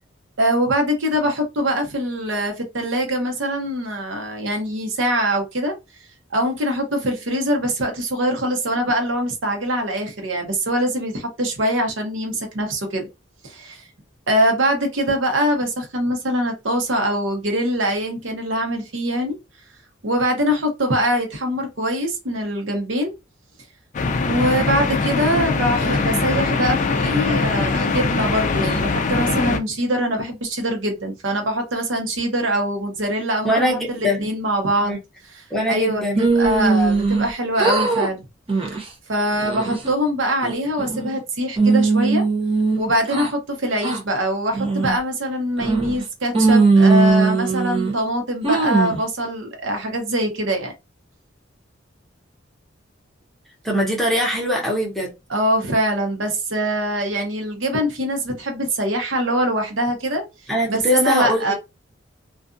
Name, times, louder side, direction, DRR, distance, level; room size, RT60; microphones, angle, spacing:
voice 1, 0.4-5.7 6.3-13.1 13.4-13.9 14.3-19.4 20.0-23.1 24.2-34.9 35.3-38.2 39.1-42.2 42.8-50.7 55.3-60.2 60.7-61.5, equal, 85° right, 0.9 m, -23 dB
sound 1, 23.9-29.6, left 4 dB, 40° left, 0.4 m, -22 dB
voice 2, 33.4-34.3 34.8-35.0 35.5-36.2 53.6-55.1 60.5-61.4, equal, ahead, 0.9 m, -21 dB
sound 2, 36.2-37.3 37.6-38.1 38.5-38.8 39.3-39.9 40.4-41.2 41.6-43.3 43.8-44.0 44.5-45.0 45.6-46.0 46.3-47.9 48.4-49.0, right 4 dB, 30° right, 0.7 m, -19 dB
2.5 x 2.3 x 2.5 m
head